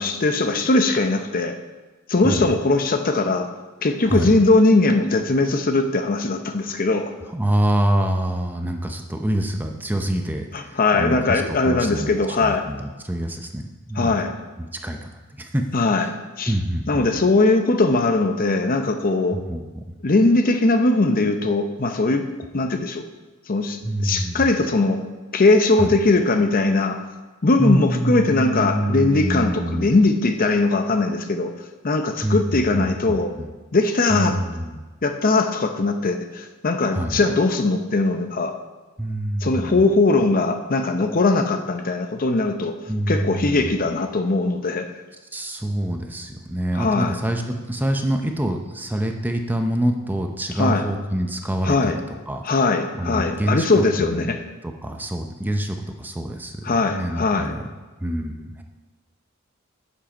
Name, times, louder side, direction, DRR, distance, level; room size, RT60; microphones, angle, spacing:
voice 1, 0.0-1.6 2.1-3.5 3.8-7.1 10.5-12.6 14.0-14.3 15.7-16.1 16.4-16.5 16.9-19.4 20.0-22.3 22.5-23.1 23.5-25.0 25.3-27.0 27.4-31.5 31.8-33.3 33.7-34.4 35.0-38.5 39.4-42.7 43.1-44.9 46.8-47.2 50.6-50.8 51.6-52.0 52.4-54.4 56.6-57.5, left 3 dB, 40° left, 6 dB, 0.7 m, -20 dB
voice 2, 2.2-2.6 4.1-4.3 7.2-14.1 14.6-15.6 16.5-17.0 19.3-19.9 23.8-24.5 25.8-25.9 27.6-29.9 32.2-33.5 34.1-34.8 36.9-37.2 39.0-39.8 42.9-43.8 45.3-52.4 53.0-54.3 54.6-57.6 58.0-58.6, right 1 dB, 10° right, 4 dB, 0.6 m, -26 dB
7.4 x 7.3 x 5.3 m, 1.2 s
head